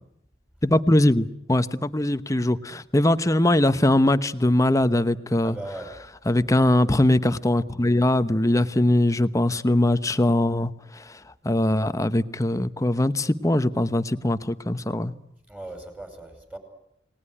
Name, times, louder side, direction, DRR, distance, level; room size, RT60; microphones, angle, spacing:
voice 1, 0.6-5.6 6.3-11.1 11.4-15.1, left 1 dB, 20° left, 1.0 m, -21 dB
voice 2, 5.4-5.9 15.5-16.6, right 2 dB, 10° right, 5.4 m, -38 dB
29.5 x 19.5 x 9.9 m
head